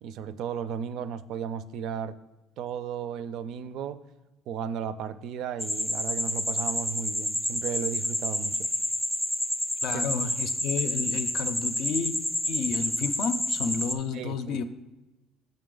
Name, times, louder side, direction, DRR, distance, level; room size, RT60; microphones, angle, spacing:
voice 1, 0.0-2.2 2.6-4.0 4.5-8.7 9.9-10.1 14.1-14.6, right 8 dB, 65° right, 14 dB, 0.4 m, -35 dB
sound 1, 5.6-13.9, left 1 dB, ahead, 0.4 m, -29 dB
voice 2, 9.8-12.1 12.4-14.6, left 6 dB, 70° left, 10 dB, 0.5 m, -31 dB
7.4 x 5.2 x 3.8 m, 1.1 s
cardioid pair, 140°, 0 cm